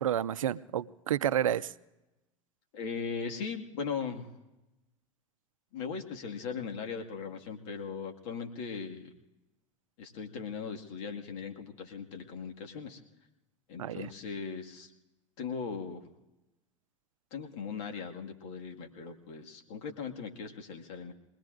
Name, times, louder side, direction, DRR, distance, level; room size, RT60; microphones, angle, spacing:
voice 1, 0.0-1.7 13.8-14.1, right 10 dB, 85° right, 17 dB, 0.5 m, -30 dB
voice 2, 2.7-4.3 5.7-9.1 10.0-13.0 13.7-14.9 15.4-16.1 17.3-21.1, left 5 dB, 60° left, 3 dB, 2.0 m, -39 dB
27.5 x 20.5 x 2.6 m, 1.0 s
hypercardioid pair, 85°, 17 cm